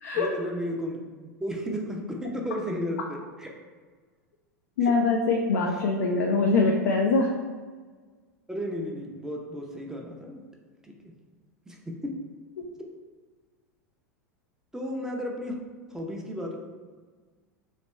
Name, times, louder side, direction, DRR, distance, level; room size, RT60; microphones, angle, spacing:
voice 1, 0.1-1.0 1.4-3.5 4.8-4.9 8.5-10.4 10.8-11.1 11.7-12.2 14.7-15.5 15.9-16.6, equal, 5° right, 0 dB, 0.6 m, -33 dB
voice 2, 4.8-7.3 12.6-12.7, left 3 dB, 65° left, 0 dB, 0.5 m, -23 dB
3.2 x 2.9 x 4.2 m, 1.5 s
figure-of-eight pair, 85°, 9 cm